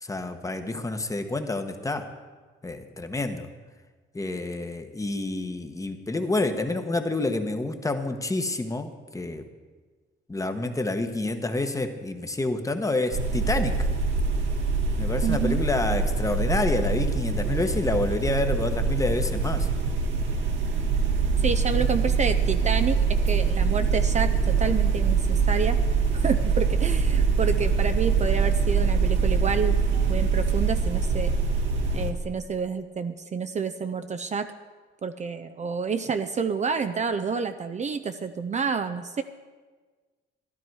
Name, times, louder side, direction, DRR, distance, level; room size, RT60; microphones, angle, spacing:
voice 1, 0.0-2.1 2.6-3.5 4.1-9.4 10.3-13.9 15.0-19.7, left 2 dB, 15° left, 7 dB, 1.1 m, -28 dB
sound 1, 13.1-32.1, right 5 dB, 70° right, 1.6 m, -24 dB
voice 2, 15.2-15.6 21.4-25.8 26.1-29.7 30.1-31.3 31.9-34.5 35.0-39.2, right 5 dB, 35° right, 9 dB, 0.6 m, -29 dB
13.0 x 11.5 x 4.7 m, 1.4 s
cardioid pair, 90°, 20 cm